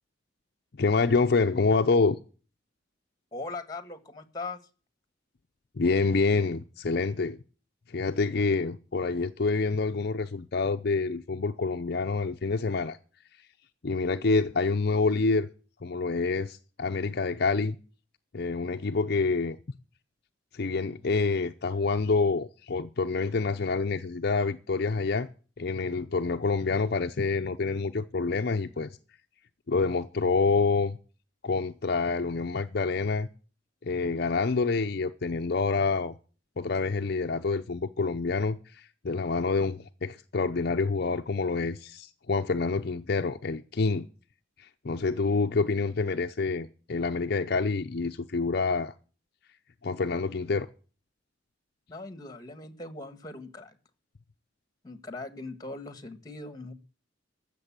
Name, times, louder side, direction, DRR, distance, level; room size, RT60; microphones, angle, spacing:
voice 1, 0.8-2.2 5.8-7.4 7.9-13.0 13.8-15.5 15.8-17.8 18.3-19.6 20.5-25.3 25.6-28.9 29.7-31.0 31.4-33.3 33.8-36.2 36.6-44.1 44.6-48.9 49.8-50.7, left 4 dB, 55° left, 0.6 m, -27 dB
voice 2, 3.3-4.6 51.9-53.7 54.8-56.7, left 3 dB, 20° left, 1.6 m, -40 dB
15.0 x 6.8 x 8.7 m
head